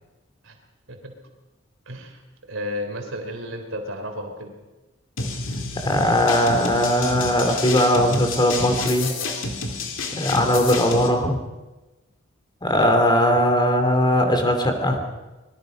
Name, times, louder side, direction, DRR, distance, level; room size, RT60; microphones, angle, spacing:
voice 1, 1.9-2.2 2.5-4.5, left 1 dB, 70° right, 4 dB, 3.6 m, -32 dB
sound 1, 5.2-11.1, left 3 dB, 70° left, 2.7 m, -29 dB
voice 2, 5.8-9.1 10.1-11.4 12.6-15.0, left 1 dB, 20° left, 5 dB, 3.0 m, -19 dB
24.5 x 21.5 x 5.3 m, 1.1 s
head